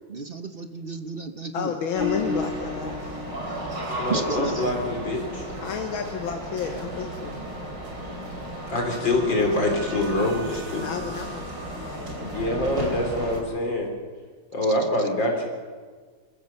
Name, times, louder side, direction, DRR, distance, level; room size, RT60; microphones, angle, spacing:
voice 1, 0.1-2.1 2.8-3.2 4.1-4.8 14.6-15.1, right 4 dB, 45° right, 8 dB, 0.8 m, -34 dB
voice 2, 1.5-3.2 5.6-7.4 10.7-11.5 11.8-12.4, left 6 dB, 90° left, 5 dB, 2.1 m, -31 dB
sound 1, 1.9-13.4, equal, 65° right, 4.4 m, -33 dB
voice 3, 4.0-5.5 8.7-11.0 12.2-13.9 14.5-15.4, left 1 dB, 70° left, 2 dB, 4.4 m, -25 dB
26.5 x 15.0 x 6.9 m, 1.5 s
omnidirectional pair, 2.1 m